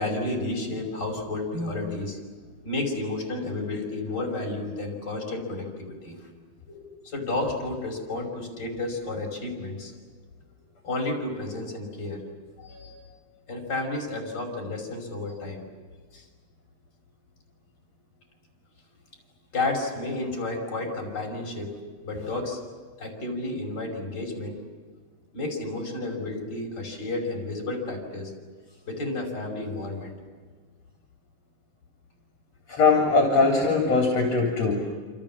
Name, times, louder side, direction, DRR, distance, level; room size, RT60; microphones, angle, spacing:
voice 1, 0.0-2.2 2.6-6.1 6.7-9.9 10.8-12.2 13.5-15.6 16.1-16.2 19.5-21.7 22.0-22.6 23.0-24.6 25.3-28.3 28.9-30.1, left 2 dB, 30° left, 1 dB, 6.3 m, -31 dB
voice 2, 12.6-13.0 32.7-34.7, left 4 dB, 55° left, 0 dB, 4.7 m, -21 dB
28.5 x 27.5 x 7.5 m, 1.5 s
omnidirectional pair, 3.5 m